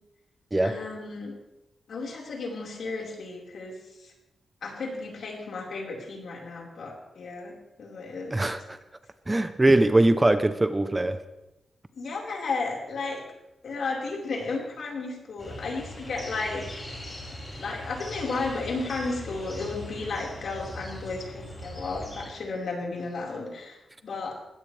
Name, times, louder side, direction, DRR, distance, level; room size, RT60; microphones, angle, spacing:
voice 1, 0.6-1.3 1.9-4.1 4.6-8.3 11.9-13.2 13.6-17.0 17.6-24.5, left 3 dB, 65° left, -2 dB, 4.7 m, -34 dB
voice 2, 8.3-8.8 9.3-11.2, right 1 dB, 15° right, 10 dB, 0.7 m, -22 dB
sound 1, 15.4-22.3, left 1 dB, 15° left, 6.4 m, -40 dB
20.0 x 16.5 x 3.4 m, 0.97 s
wide cardioid pair, 130°, 0 cm